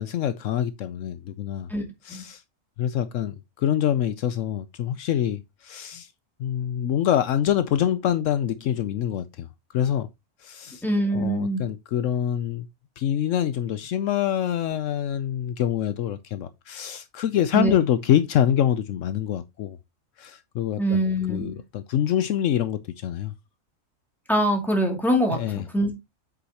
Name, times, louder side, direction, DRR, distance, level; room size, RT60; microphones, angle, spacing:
voice 1, 0.0-1.7 2.0-2.4 2.8-6.1 6.4-9.5 9.7-10.1 10.4-10.8 11.1-12.7 13.0-19.8 20.2-21.0 21.3-23.3 25.3-25.6, left 10 dB, 75° left, 0.9 m, -25 dB
voice 2, 10.8-11.7 17.5-17.8 20.8-21.6 24.3-25.9, right 1 dB, ahead, 2.5 m, -24 dB
8.1 x 6.2 x 2.9 m
omnidirectional pair, 1.4 m